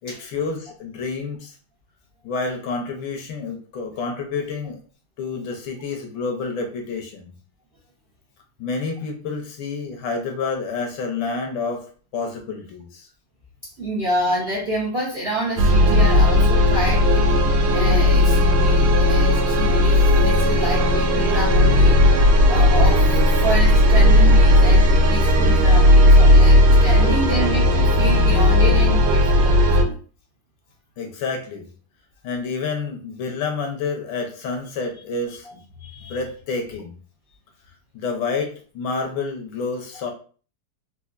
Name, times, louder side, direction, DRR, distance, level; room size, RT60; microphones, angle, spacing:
voice 1, 0.0-1.5 2.2-4.8 5.2-7.3 8.6-13.1 27.0-27.5 31.0-31.7 32.2-35.6 36.1-36.9 37.9-40.1, left 4 dB, 75° left, 3 dB, 1.3 m, -29 dB
voice 2, 13.8-22.2 22.5-23.0 23.4-29.9 35.8-36.2, equal, 65° right, -6 dB, 0.5 m, -28 dB
sound 1, 15.6-29.8, left 1 dB, 85° right, 1.6 m, -15 dB
4.3 x 2.4 x 2.4 m, 0.40 s
omnidirectional pair, 2.4 m